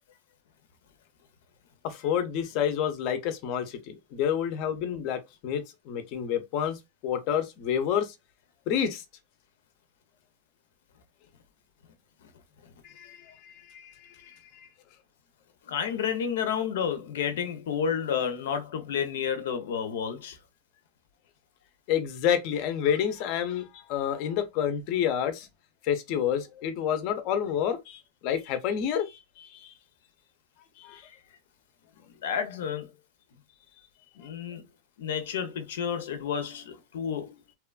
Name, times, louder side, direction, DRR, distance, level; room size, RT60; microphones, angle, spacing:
voice 1, 1.8-8.1 8.7-9.0 12.8-14.7 21.9-25.5 25.8-29.7 30.8-31.0, left 9 dB, 40° left, 0.5 m, -29 dB
voice 2, 15.6-20.4 32.2-32.9 34.2-34.6 35.0-37.3, left 7 dB, 85° left, 0.6 m, -30 dB
2.9 x 2.2 x 2.3 m
supercardioid pair, 170°, 0 cm